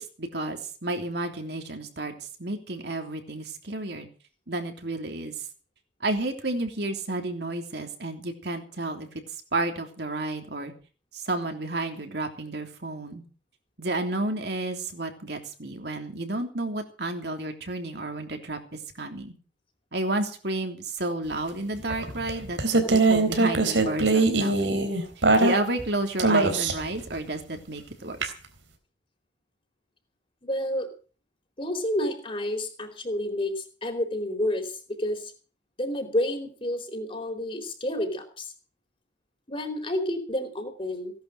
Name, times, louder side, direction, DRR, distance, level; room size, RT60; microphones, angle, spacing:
voice 1, 0.0-4.1 4.5-5.5 6.0-9.1 9.3-10.7 11.1-13.2 13.8-18.6 19.0-19.3 19.9-22.6 22.9-24.8 25.2-28.3, right 2 dB, 60° right, 4 dB, 3.2 m, -31 dB
sound 1, 21.9-25.9 26.2-26.9 28.2-28.3, right 3 dB, 90° right, 3.8 m, -22 dB
voice 2, 30.4-30.9 31.6-34.7 35.0-35.3 35.8-38.5 39.5-41.1, left 1 dB, 30° left, 5 dB, 4.2 m, -29 dB
17.5 x 11.5 x 6.4 m, 0.39 s
head